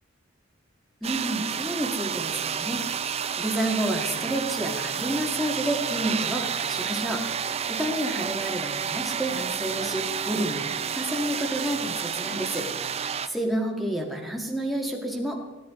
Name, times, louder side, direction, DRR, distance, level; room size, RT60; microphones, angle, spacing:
voice 1, 1.0-10.6 10.9-15.4, right 1 dB, ahead, -1 dB, 1.8 m, -30 dB
sound 1, 1.0-13.3, right 7 dB, 35° right, 0.5 m, -30 dB
16.0 x 10.5 x 3.7 m, 1.2 s
head